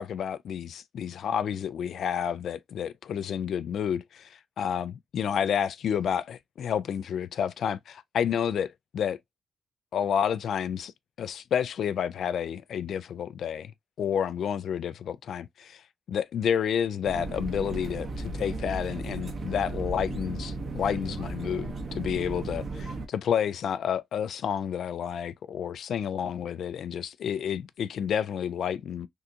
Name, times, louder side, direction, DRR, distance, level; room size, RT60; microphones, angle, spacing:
voice 1, 0.0-9.2 9.9-10.9 11.2-13.7 14.0-15.8 16.1-29.1, left 8 dB, 75° left, 0.3 m, -30 dB
sound 1, 17.1-23.1, right 2 dB, 60° right, 0.9 m, -35 dB
3.5 x 2.4 x 2.7 m
supercardioid pair, 60°, 0 cm